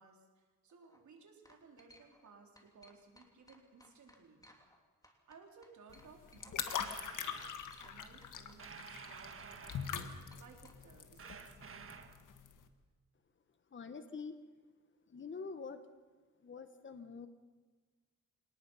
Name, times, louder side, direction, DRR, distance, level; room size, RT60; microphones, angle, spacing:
voice 1, 0.0-4.5 5.3-10.0 10.4-11.9, right 4 dB, 70° right, 2 dB, 4.0 m, -60 dB
sound 1, 0.7-1.0 1.4-2.3 2.5-4.8 5.0-6.5 6.8-6.9 7.4-8.0 8.2-10.8, left 1 dB, 10° left, 3.1 m, -63 dB
sound 2, 5.9-12.6, left 8 dB, 85° left, 1.7 m, -43 dB
sound 3, 6.7-7.6 8.6-10.2 11.2-12.2, right 6 dB, 45° right, 1.6 m, -51 dB
voice 2, 13.7-14.4 15.1-15.8 16.4-17.3, left 5 dB, 40° left, 9 dB, 1.4 m, -46 dB
27.5 x 19.0 x 5.7 m, 1.4 s
cardioid pair, 95°, 30 cm